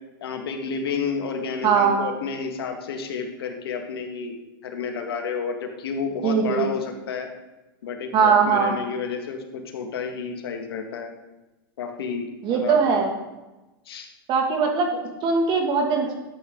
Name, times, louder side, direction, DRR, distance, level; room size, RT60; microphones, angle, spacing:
voice 1, 0.2-4.3 4.6-7.3 7.8-11.1 11.8-13.0 13.9-14.1, left 5 dB, 80° left, 4 dB, 1.9 m, -30 dB
voice 2, 1.6-2.0 6.2-6.7 8.1-8.7 12.4-13.1 14.3-16.1, right 5 dB, 40° right, 3 dB, 2.3 m, -20 dB
12.0 x 8.0 x 3.9 m, 1.0 s
hypercardioid pair, 125°, 12 cm